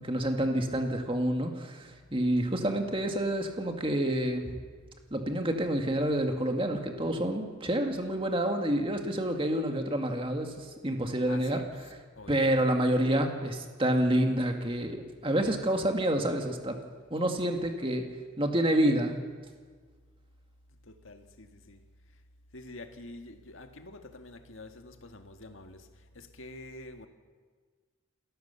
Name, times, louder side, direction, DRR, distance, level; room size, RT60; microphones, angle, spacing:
voice 1, 0.0-4.6 5.1-11.9 12.3-16.8 17.1-18.0 18.4-19.1, right 1 dB, 25° right, 4 dB, 2.0 m, -28 dB
voice 2, 22.5-24.7 25.1-25.7 26.4-27.1, left 2 dB, 80° left, 6 dB, 1.7 m, -46 dB
28.5 x 14.5 x 7.0 m, 1.6 s
head